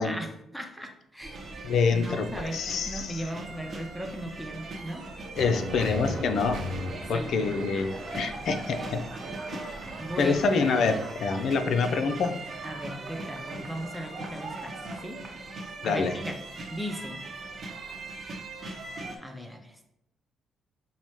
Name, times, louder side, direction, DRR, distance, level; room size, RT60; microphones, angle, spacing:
voice 1, 0.0-5.1 7.1-7.5 10.0-10.5 12.6-15.2 15.8-17.2 19.2-19.8, equal, 5° left, 3 dB, 0.5 m, -38 dB
sound 1, 1.2-19.2, right 2 dB, 40° right, 0.8 m, -40 dB
voice 2, 1.6-3.2 5.4-6.6 7.1-9.1 10.2-12.3 15.8-16.2, left 4 dB, 65° left, 8 dB, 0.4 m, -26 dB
sound 2, 5.3-11.1, equal, 75° right, 0.7 m, -39 dB
5.5 x 2.0 x 3.1 m, 0.82 s
cardioid pair, 90°, 0 cm